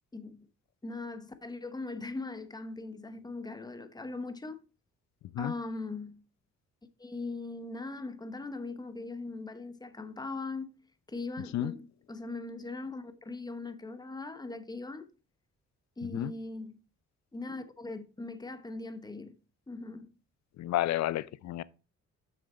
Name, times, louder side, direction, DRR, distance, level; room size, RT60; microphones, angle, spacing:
voice 1, 0.1-0.5 0.8-4.6 5.4-6.2 7.0-10.8 11.1-15.1 16.0-16.8 17.3-19.3 19.7-20.1, left 3 dB, 15° left, 1.0 m, -40 dB
voice 2, 20.6-21.6, left 14 dB, 65° left, 0.5 m, -31 dB
6.8 x 6.5 x 4.2 m
cardioid pair, 90°, 30 cm